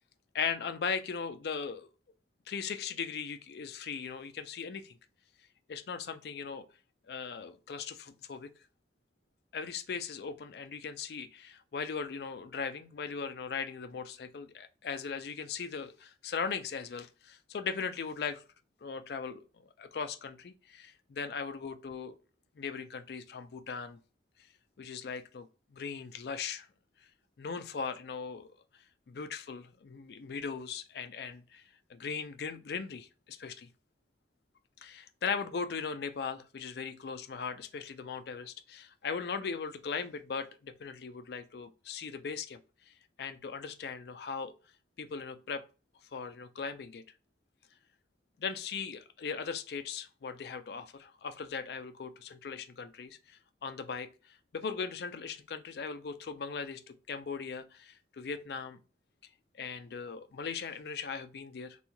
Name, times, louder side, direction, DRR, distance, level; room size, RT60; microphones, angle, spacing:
voice 1, 0.3-1.9 2.5-5.0 5.7-6.7 7.1-8.5 9.5-18.4 18.8-22.2 22.6-24.0 24.8-26.7 27.4-28.5 29.1-31.6 31.9-33.7 34.8-44.5 45.0-45.6 46.1-47.0 48.4-58.8 59.5-61.8, left 5 dB, 60° left, 0.4 m, -39 dB
3.4 x 2.3 x 2.9 m
head